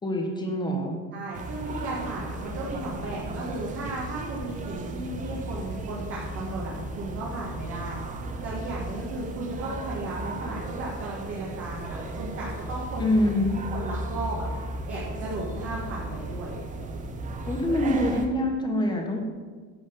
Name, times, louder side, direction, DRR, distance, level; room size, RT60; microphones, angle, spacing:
voice 1, 0.0-1.0 13.0-13.6 17.4-19.2, left 1 dB, 10° left, 2 dB, 1.2 m, -25 dB
voice 2, 1.1-8.0 8.4-13.1 13.5-14.5 14.9-16.6, right 2 dB, 35° right, -5 dB, 2.1 m, -35 dB
sound 1, 1.3-18.3, right 2 dB, 20° right, 0.7 m, -35 dB
11.0 x 6.1 x 7.2 m, 1.5 s
cardioid pair, 170°, 40 cm